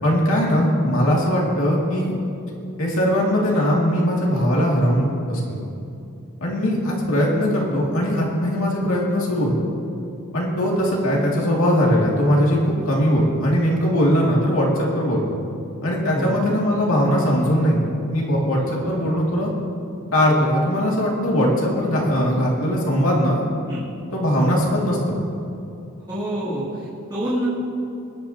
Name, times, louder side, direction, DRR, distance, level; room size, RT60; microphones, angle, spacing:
voice 1, 0.0-2.2 2.8-5.6 6.4-9.6 10.3-15.4 15.8-19.5 20.1-23.4 24.1-25.2, equal, 70° left, -3 dB, 2.4 m, -20 dB
voice 2, 16.1-16.5 18.6-18.9 23.7-23.9 26.1-27.5, equal, 20° right, -12 dB, 2.7 m, -28 dB
21.0 x 9.4 x 2.9 m, 2.7 s
head